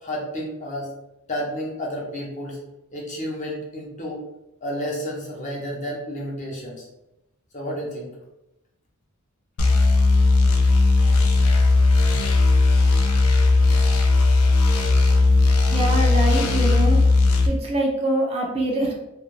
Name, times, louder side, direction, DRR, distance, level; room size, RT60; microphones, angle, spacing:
voice 1, 0.0-0.9 1.3-2.6 2.9-4.2 4.6-6.9 7.5-8.1, equal, 35° left, -3 dB, 0.7 m, -31 dB
sound 1, 9.6-17.5, left 3 dB, 85° left, 0.4 m, -17 dB
voice 2, 15.4-17.0 17.5-18.9, right 1 dB, 30° right, -1 dB, 0.4 m, -24 dB
2.3 x 2.2 x 3.0 m, 0.93 s
head